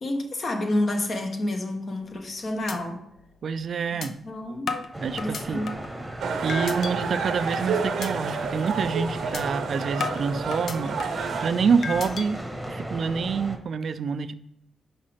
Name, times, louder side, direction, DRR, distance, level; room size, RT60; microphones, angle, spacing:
voice 1, 0.0-3.0 3.9-4.8 5.1-5.8, left 1 dB, 45° left, 1.1 m, -29 dB
sound 1, 2.0-2.3 2.7-2.8 3.2-3.3 4.0-4.1 4.7-5.9 6.5-6.9 7.4-7.6 8.0-8.1 8.5-8.7 9.3-9.4 10.0-11.3 11.8-12.3, left 5 dB, 65° left, 0.6 m, -33 dB
voice 2, 3.4-4.1 5.0-5.6 6.4-12.4 12.7-14.3, right 5 dB, 60° right, 0.4 m, -27 dB
sound 2, 4.9-13.6, right 1 dB, 5° right, 1.1 m, -36 dB
sound 3, 6.2-11.5, right 5 dB, 75° right, 0.8 m, -30 dB
5.6 x 4.9 x 5.0 m
cardioid pair, 100°, 0 cm